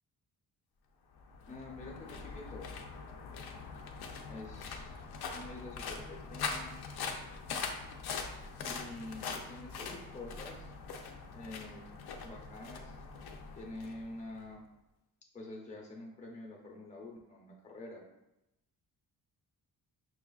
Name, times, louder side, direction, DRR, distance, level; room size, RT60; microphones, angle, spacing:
sound 1, 1.1-14.5, left 5 dB, 90° left, 0.6 m, -42 dB
voice 1, 1.5-2.7 4.3-4.9 5.3-6.8 8.6-10.7 11.3-11.9 12.2-13.0 13.6-14.6 15.3-18.0, left 2 dB, 20° left, -1 dB, 0.6 m, -47 dB
6.1 x 2.4 x 2.3 m, 0.90 s
wide cardioid pair, 140°, 37 cm